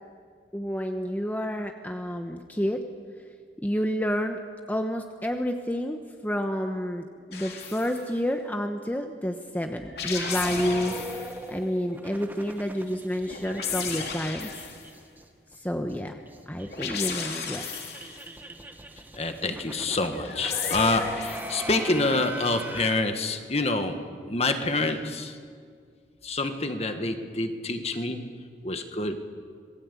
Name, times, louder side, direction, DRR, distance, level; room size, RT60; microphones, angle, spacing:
voice 1, 0.5-2.8 3.6-4.4 4.7-14.5 15.6-16.2 16.5-17.7, equal, 10° left, 4 dB, 1.0 m, -29 dB
sound 1, 7.3-8.0 9.8-11.4 13.2-14.9 16.6-18.3 20.1-21.7, left 6 dB, 60° left, 3.5 m, -34 dB
tcm-racing-join glitched, 10.1-15.2 15.5-15.6 15.9-16.0 16.3-23.0, right 1 dB, 10° right, 1.5 m, -40 dB
voice 2, 19.1-25.4 26.2-29.2, left 2 dB, 35° left, 7 dB, 1.7 m, -27 dB
26.5 x 20.0 x 8.5 m, 2.1 s
head